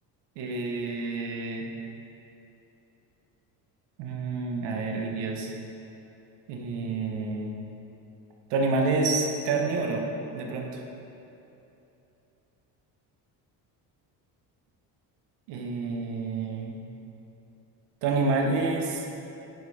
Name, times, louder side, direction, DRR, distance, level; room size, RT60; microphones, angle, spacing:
voice 1, 0.4-1.7 4.0-5.5 6.5-7.5 8.5-10.1 10.3-10.8 15.5-16.8 18.0-19.1, right 3 dB, 80° right, 1 dB, 1.4 m, -28 dB
10.5 x 5.3 x 5.0 m, 2.9 s
cardioid pair, 105°, 41 cm